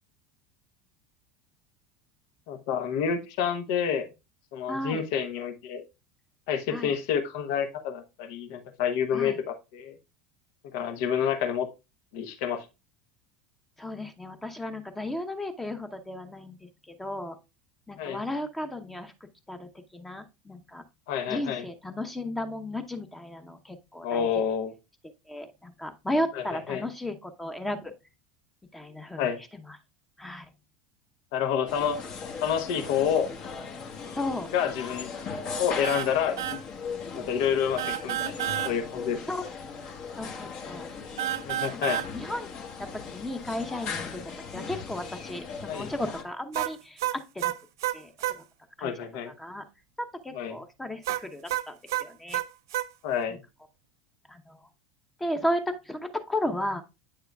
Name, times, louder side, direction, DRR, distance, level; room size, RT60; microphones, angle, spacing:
voice 1, 2.5-4.1 4.5-5.8 6.5-10.0 10.7-11.7 12.1-12.6 18.0-18.2 21.1-21.6 24.0-24.7 26.3-26.8 29.2-29.4 31.3-32.0 32.4-33.3 34.5-35.1 35.6-36.6 37.1-39.2 41.4-42.0 45.7-45.9 48.8-49.3 50.3-50.6 53.0-53.4, left 8 dB, 60° left, 8 dB, 0.9 m, -28 dB
voice 2, 4.7-5.0 6.7-6.9 9.1-9.4 13.8-17.4 17.9-19.1 19.5-20.8 21.3-24.3 25.3-27.9 28.7-29.3 29.7-29.8 30.2-30.5 34.1-34.5 37.2-37.3 39.3-39.4 40.2-40.9 41.7-44.2 44.5-47.5 47.9-48.4 48.8-48.9 49.4-49.7 50.0-52.4 54.3-54.7 55.2-56.8, left 1 dB, 10° left, 7 dB, 0.9 m, -34 dB
sound 1, 31.7-46.2, left 5 dB, 45° left, 1.3 m, -38 dB
sound 2, 35.8-36.1 36.4-36.6 37.8-38.7 41.2-42.1 46.5-48.4 51.0-52.9, right 14 dB, 70° right, 0.4 m, -30 dB
8.9 x 6.7 x 2.3 m, 0.26 s
figure-of-eight pair, 75°, 2 cm